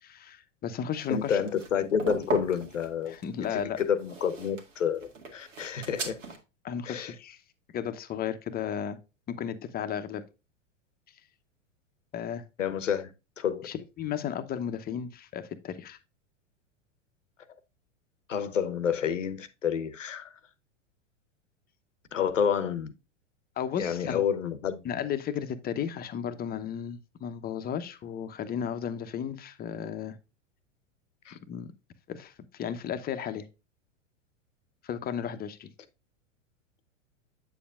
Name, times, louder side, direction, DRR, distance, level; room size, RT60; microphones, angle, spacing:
voice 1, 0.0-1.4 3.0-3.8 6.6-7.4 7.7-9.0 9.3-10.2 12.1-12.4 13.6-16.0 23.6-24.2 24.8-30.2 31.5-31.7 32.1-33.5 34.8-35.7, left 8 dB, 25° left, 0.9 m, -34 dB
sound 1, 1.0-6.4, right 4 dB, 85° right, 2.1 m, -38 dB
voice 2, 1.1-3.2 3.5-5.0 5.3-6.2 6.8-7.1 12.6-13.1 13.4-13.7 18.3-20.3 22.1-22.9 23.8-24.8 31.3-31.4, left 8 dB, 85° left, 1.0 m, -29 dB
8.5 x 6.9 x 2.4 m
hypercardioid pair, 100°, 37 cm